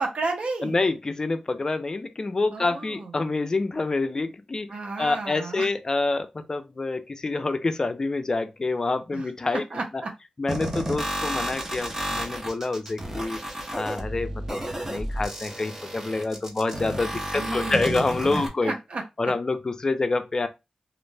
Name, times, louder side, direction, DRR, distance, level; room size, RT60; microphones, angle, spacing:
voice 1, 0.0-0.8 2.5-3.1 4.7-5.7 9.1-10.1 17.1-19.3, right 3 dB, 65° right, 0.7 m, -33 dB
voice 2, 0.6-4.7 5.0-9.6 10.4-13.4 13.7-18.7 19.2-20.5, left 3 dB, 35° left, 0.4 m, -27 dB
sound 1, 10.5-18.5, right 1 dB, 20° right, 0.6 m, -32 dB
2.4 x 2.0 x 3.2 m
wide cardioid pair, 125°, 2 cm